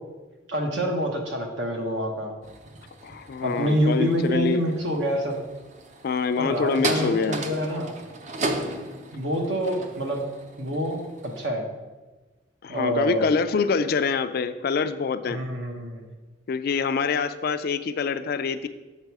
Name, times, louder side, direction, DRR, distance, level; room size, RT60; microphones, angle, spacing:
voice 1, 0.5-2.3 3.4-5.4 6.4-8.0 9.1-10.3 10.6-11.7 12.7-13.3 15.3-16.0, equal, 75° right, 2 dB, 1.1 m, -27 dB
sound 1, 2.4-11.5, right 2 dB, 40° right, 0.5 m, -35 dB
voice 2, 3.0-4.6 6.0-7.4 12.6-15.4 16.5-18.7, left 5 dB, 55° left, 11 dB, 0.4 m, -25 dB
6.5 x 4.1 x 4.7 m, 1.2 s
head